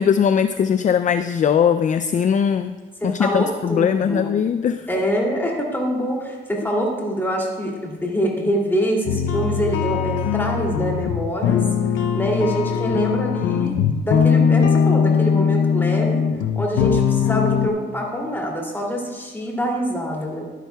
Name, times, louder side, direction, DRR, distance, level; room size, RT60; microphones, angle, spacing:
voice 1, 0.0-2.7 3.0-4.9, left 7 dB, 40° left, 10 dB, 0.4 m, -20 dB
voice 2, 3.0-4.3 4.9-11.6 12.1-16.2 16.6-20.4, equal, 10° left, -1 dB, 2.6 m, -25 dB
sound 1, 9.1-17.7, left 7 dB, 80° left, 0.6 m, -20 dB
12.0 x 11.0 x 2.3 m, 1.3 s
cardioid pair, 90°, 20 cm